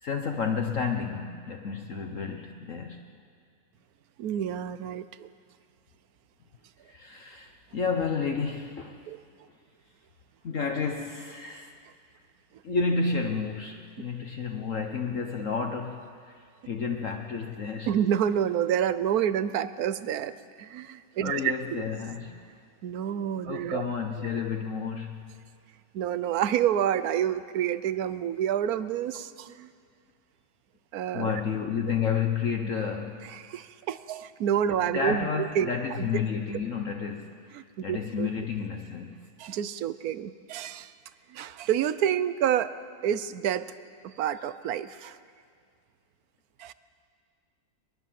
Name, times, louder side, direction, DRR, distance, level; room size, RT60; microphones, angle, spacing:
voice 1, 0.0-3.0 6.9-9.0 10.4-11.7 12.6-17.9 21.2-22.4 23.5-25.3 31.1-33.3 34.9-37.3 37.8-39.2, left 5 dB, 50° left, 3 dB, 1.3 m, -31 dB
voice 2, 4.2-5.3 9.1-9.2 17.9-21.5 22.8-23.8 25.9-29.7 30.9-31.3 33.3-36.1 37.5-38.3 39.4-40.9 41.3-42.7 43.0-43.7 44.0-45.2 46.6-46.7, right 9 dB, 65° right, 14 dB, 1.2 m, -28 dB
22.0 x 21.0 x 7.6 m, 2.2 s
omnidirectional pair, 1.8 m